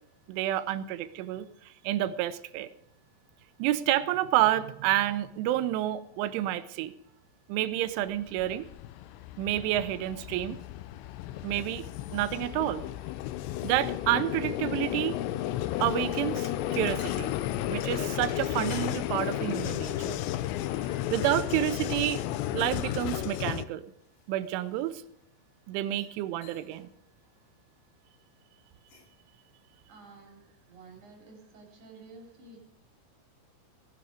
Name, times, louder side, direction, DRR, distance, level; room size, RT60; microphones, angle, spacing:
voice 1, 0.3-2.7 3.6-6.9 7.5-8.7 9.4-10.6 11.4-11.8 12.1-12.8 13.6-15.2 15.8-17.4 17.7-20.2 21.1-22.2 22.5-23.8 24.3-25.0 25.7-26.9, right 14 dB, 80° right, 13 dB, 2.9 m, -29 dB
Vehicle, 8.0-23.7, left 13 dB, 90° left, 2.5 m, -33 dB
sound 1, 15.3-21.9 22.3-25.3 25.8-26.2 26.4-26.9 27.2-27.5 28.6-29.2, left 4 dB, 65° left, 4.6 m, -55 dB
voice 2, 29.9-32.6, right 3 dB, 40° right, 0 dB, 4.1 m, -51 dB
17.0 x 11.0 x 5.0 m, 0.80 s
omnidirectional pair, 5.9 m